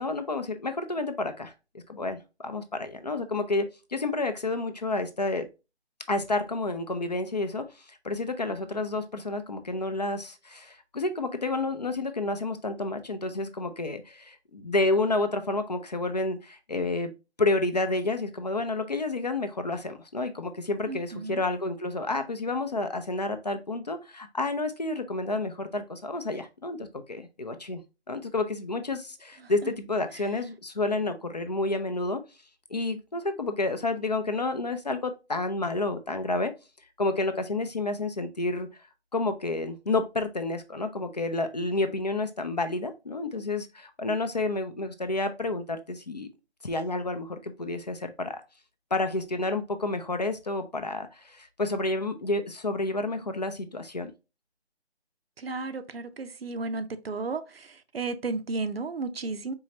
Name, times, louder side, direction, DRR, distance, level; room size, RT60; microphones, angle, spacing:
voice 1, 0.0-1.5 1.9-5.5 6.1-17.1 17.4-27.8 28.1-32.2 32.7-36.5 37.0-38.7 39.1-46.3 46.6-48.4 48.9-54.1, left 2 dB, 40° left, 0.5 m, -30 dB
voice 2, 20.9-21.4 29.4-29.7 55.4-59.5, right 3 dB, 60° right, 0.6 m, -34 dB
4.6 x 3.2 x 2.8 m
figure-of-eight pair, 155°, 33 cm